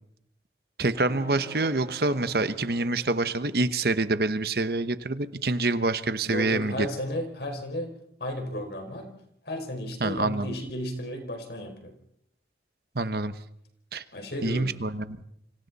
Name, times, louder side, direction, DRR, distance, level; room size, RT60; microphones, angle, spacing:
voice 1, 0.8-6.9 10.0-10.6 12.9-13.3 13.9-14.0 14.4-15.2, right 2 dB, 60° right, 12 dB, 1.1 m, -26 dB
sound 1, 0.9-3.9, right 1 dB, 15° right, 5.9 m, -47 dB
voice 2, 6.3-7.9 8.2-9.1 9.4-11.9 14.1-14.7, equal, 70° left, 4 dB, 5.0 m, -33 dB
28.5 x 25.5 x 4.2 m, 0.73 s
head